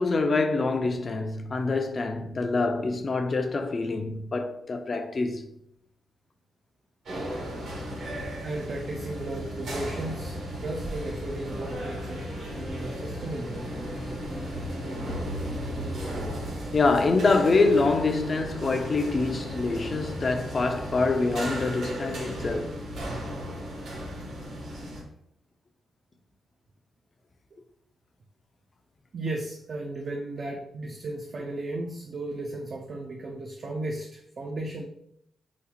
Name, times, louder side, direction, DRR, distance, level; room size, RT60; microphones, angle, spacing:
voice 1, 0.0-5.4 8.0-8.2 16.7-22.7, left 3 dB, 35° left, 0.4 m, -25 dB
sound 1, 7.1-25.0, equal, 75° right, 1.2 m, -35 dB
voice 2, 8.4-13.6 29.1-34.8, right 2 dB, 45° right, 0.4 m, -35 dB
sound 2, 9.0-15.1, equal, 80° left, 0.8 m, -43 dB
3.8 x 2.4 x 2.8 m
cardioid pair, 125°, 0 cm